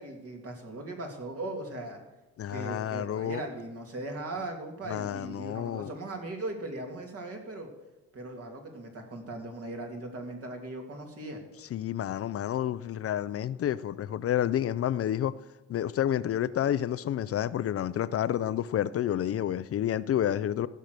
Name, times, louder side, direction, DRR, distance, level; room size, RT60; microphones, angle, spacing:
voice 1, 0.0-2.0 2.5-7.7 8.1-11.4, right 2 dB, 50° right, 2.7 m, -39 dB
voice 2, 2.4-3.4 4.9-5.9 11.7-15.3 15.7-20.7, left 11 dB, 50° left, 0.5 m, -29 dB
15.5 x 6.4 x 6.7 m
cardioid pair, 90°, 30 cm